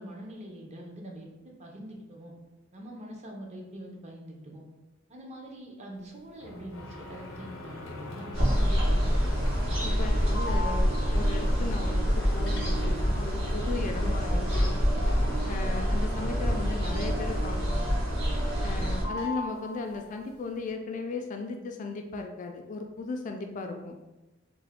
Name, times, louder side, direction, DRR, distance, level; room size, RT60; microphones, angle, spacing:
voice 1, 0.0-2.3 2.7-4.6 5.1-8.4, right 1 dB, 35° right, 0 dB, 0.6 m, -44 dB
sound 1, 6.4-17.9 18.2-18.8 19.0-20.3, left 2 dB, 85° left, 0.6 m, -40 dB
sound 2, 8.3-19.0, equal, 70° right, 1.5 m, -26 dB
voice 2, 8.6-9.2 9.8-14.8 15.5-17.9 18.6-24.0, left 3 dB, 40° left, 4 dB, 0.3 m, -36 dB
3.3 x 2.1 x 3.5 m, 1.0 s
head